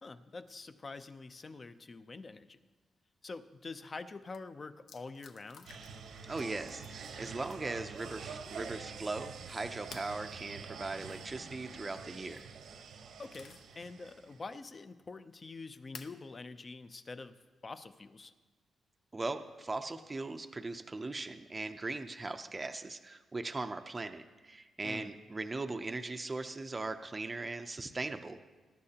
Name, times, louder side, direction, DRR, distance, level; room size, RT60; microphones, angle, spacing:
voice 1, 0.0-2.6 3.2-5.7 13.2-17.4 17.6-18.3 24.8-25.1, left 3 dB, 30° left, 11 dB, 0.5 m, -46 dB
sound 1, 3.9-4.0 4.3-4.4 4.9-6.1 6.4-7.0 7.5-7.8 9.9-10.2 12.1-12.5 12.9-13.8 14.3-14.4 15.9-16.2 17.3-17.4 19.5-19.9, left 6 dB, 70° left, 0.7 m, -53 dB
sound 2, 5.7-14.4, right 6 dB, 80° right, 0.9 m, -47 dB
voice 2, 6.3-12.4 19.1-28.4, right 3 dB, 20° right, 6 dB, 0.5 m, -39 dB
21.0 x 11.0 x 2.9 m, 1.3 s
wide cardioid pair, 150°, 0 cm